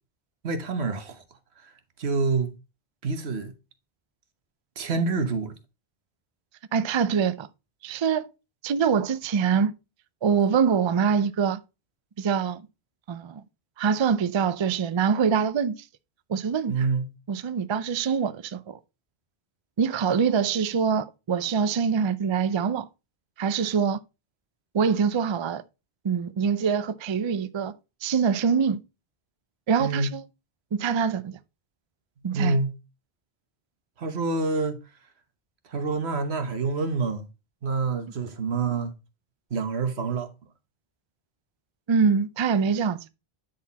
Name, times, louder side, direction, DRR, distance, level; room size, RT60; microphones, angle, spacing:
voice 1, 0.4-1.2 1.6-1.7 2.0-2.5 3.0-3.5 4.8-5.5 16.7-17.1 29.8-30.1 32.3-32.7 34.0-34.8 35.7-37.3 37.6-38.9 39.5-40.3, right 4 dB, 85° right, 1.4 m, -27 dB
voice 2, 6.7-7.5 7.8-8.3 8.6-9.7 10.2-11.6 12.2-12.6 13.1-13.4 13.8-15.8 16.3-16.9 17.3-18.8 19.8-22.9 23.4-24.0 24.7-25.6 26.0-27.7 28.0-28.8 29.7-30.2 30.7-31.4 32.2-32.6 41.9-43.0, right 6 dB, 45° right, 0.3 m, -24 dB
9.6 x 4.2 x 4.1 m
omnidirectional pair, 1.0 m